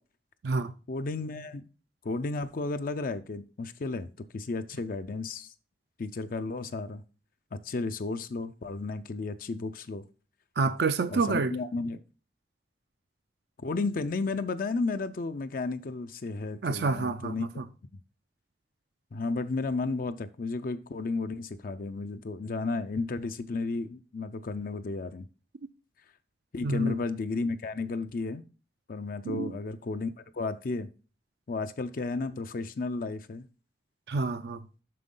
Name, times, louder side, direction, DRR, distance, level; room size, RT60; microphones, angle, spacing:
voice 1, 0.9-1.7 2.0-4.1 4.3-5.5 6.0-7.0 7.5-10.0 11.1-12.0 13.6-17.5 19.1-25.3 26.5-28.4 28.9-30.9 31.5-33.5, left 3 dB, 50° left, 0.4 m, -33 dB
voice 2, 10.6-11.5 16.6-17.6 26.6-27.0 29.2-29.5 34.1-34.6, right 4 dB, 60° right, 0.5 m, -28 dB
7.6 x 6.1 x 3.7 m
head